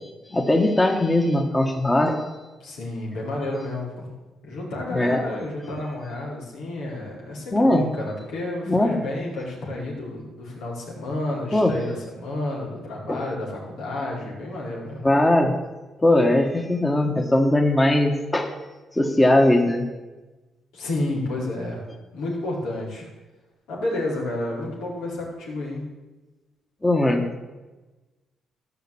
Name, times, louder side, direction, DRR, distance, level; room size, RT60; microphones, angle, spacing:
voice 1, 0.3-2.3 4.9-5.2 7.5-7.8 8.7-9.0 11.5-11.7 13.1-13.2 15.0-15.5 16.0-18.5 18.9-19.8 26.8-27.4, left 1 dB, 15° left, 3 dB, 1.5 m, -20 dB
voice 2, 2.6-4.1 4.4-15.1 20.7-21.8 22.1-23.0 23.7-25.8, left 2 dB, 90° left, -3 dB, 4.7 m, -30 dB
14.0 x 5.9 x 8.7 m, 1.2 s
cardioid pair, 90°, 0 cm